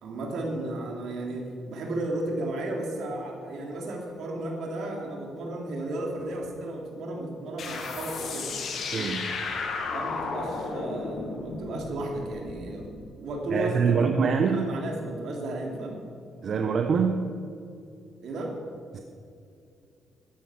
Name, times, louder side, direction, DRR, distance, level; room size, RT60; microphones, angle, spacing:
voice 1, 0.0-8.5 9.9-16.0 18.2-18.6, right 1 dB, 70° right, 1 dB, 3.0 m, -34 dB
sound 1, 7.6-12.9, left 4 dB, 65° left, 2.2 m, -34 dB
voice 2, 8.9-9.4 13.5-14.7 16.4-17.4 18.9-19.0, right 5 dB, 55° right, 6 dB, 0.9 m, -25 dB
13.5 x 11.0 x 6.1 m, 2.5 s
cardioid pair, 90°, 0 cm